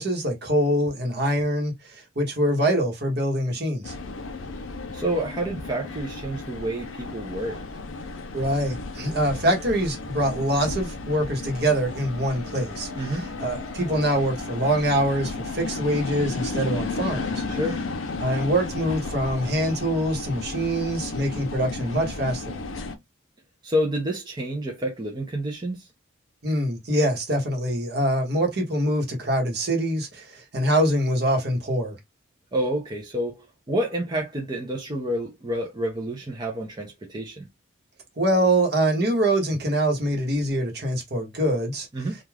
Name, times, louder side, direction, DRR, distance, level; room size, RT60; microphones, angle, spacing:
voice 1, 0.0-1.7 2.2-3.9 8.3-17.4 18.2-22.6 26.4-31.9 38.2-41.9, right 1 dB, 55° right, 1.0 m, -24 dB
sound 1, 3.8-23.0, left 3 dB, 80° left, 0.5 m, -34 dB
voice 2, 4.9-7.6 12.9-13.2 17.5-17.8 23.6-25.9 32.5-37.5 41.9-42.1, right 1 dB, 20° right, 0.4 m, -29 dB
2.3 x 2.3 x 3.2 m
head